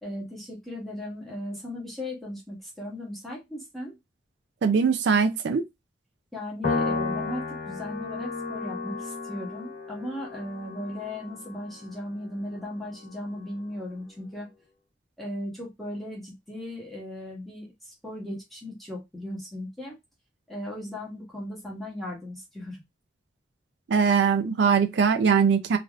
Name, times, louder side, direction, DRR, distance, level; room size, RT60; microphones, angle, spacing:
voice 1, 0.0-4.0 6.3-14.5 15.2-20.0 20.5-22.8, left 1 dB, ahead, 0.9 m, -37 dB
voice 2, 4.6-5.6 23.9-25.8, right 6 dB, 70° right, 0.4 m, -21 dB
Piano, 6.6-13.2, left 3 dB, 55° left, 1.5 m, -33 dB
3.3 x 2.4 x 2.4 m
head